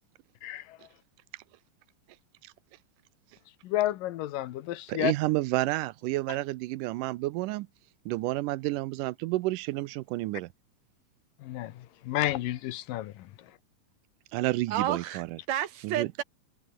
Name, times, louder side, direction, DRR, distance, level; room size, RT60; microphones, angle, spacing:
voice 1, 3.6-5.1 11.4-11.7 12.1-13.1, left 14 dB, 90° left, 2.8 m, -30 dB
voice 2, 4.9-7.7 8.1-10.5 14.3-15.4 15.8-16.1, right 18 dB, 80° right, 2.2 m, -30 dB
voice 3, 14.7-16.2, right 11 dB, 65° right, 2.3 m, -31 dB
omnidirectional pair, 3.8 m